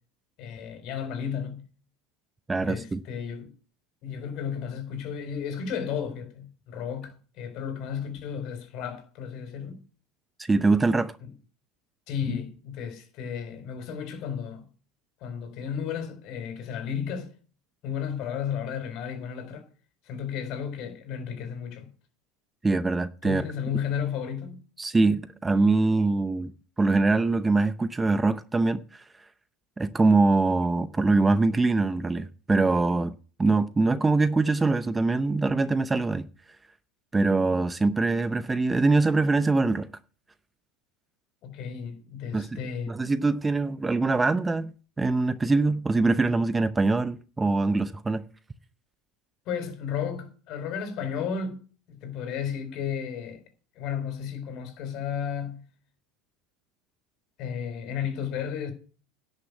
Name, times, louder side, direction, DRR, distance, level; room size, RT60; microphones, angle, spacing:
voice 1, 0.4-1.6 2.6-3.5 4.0-9.8 11.2-11.3 12.1-14.6 15.2-17.3 17.8-19.6 20.1-21.9 23.2-24.6 41.4-43.0 49.5-51.6 51.9-53.4 53.8-55.6 57.4-58.7, left 7 dB, 55° left, 4.3 m, -33 dB
voice 2, 2.5-3.0 10.4-11.1 22.6-23.4 24.8-26.5 26.8-29.0 29.8-36.3 37.1-39.9 42.3-42.6 42.9-44.7 45.0-48.2, right 3 dB, 15° right, 0.7 m, -23 dB
11.0 x 6.6 x 8.3 m
hypercardioid pair, 90°, 0 cm